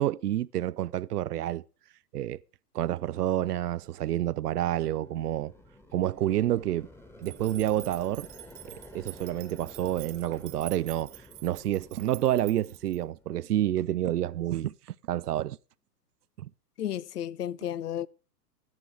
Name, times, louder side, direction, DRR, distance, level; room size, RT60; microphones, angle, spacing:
voice 1, 0.0-1.6 2.1-2.4 2.7-5.5 5.9-6.9 7.2-8.3 8.6-11.1 11.4-14.7 15.1-15.6 16.4-16.5, right 12 dB, 75° right, 0.6 m, -29 dB
sound 1, 4.0-13.7, left 1 dB, 5° left, 1.6 m, -52 dB
sound 2, 7.2-13.0, right 21 dB, 30° right, 1.0 m, -47 dB
voice 2, 16.8-18.1, left 10 dB, 75° left, 0.6 m, -33 dB
17.0 x 12.0 x 3.3 m
figure-of-eight pair, 110°, 48 cm